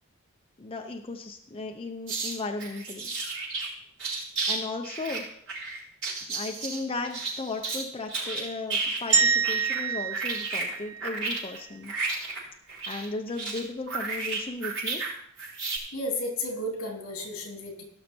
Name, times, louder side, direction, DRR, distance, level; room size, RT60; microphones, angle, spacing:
voice 1, 0.6-3.1 4.5-5.2 6.3-11.9 12.9-15.0, left 3 dB, 25° left, 3 dB, 0.7 m, -36 dB
sound 1, 2.1-2.3 2.6-3.7 4.0-4.6 4.8-7.8 8.1-9.8 10.1-15.1 15.4-15.8, right 3 dB, 65° right, 5.9 m, -32 dB
sound 2, 9.1-11.4, right 6 dB, 30° right, 1.3 m, -26 dB
voice 2, 15.9-17.8, left 1 dB, 70° left, 2 dB, 2.9 m, -33 dB
18.0 x 6.5 x 4.5 m, 0.69 s
head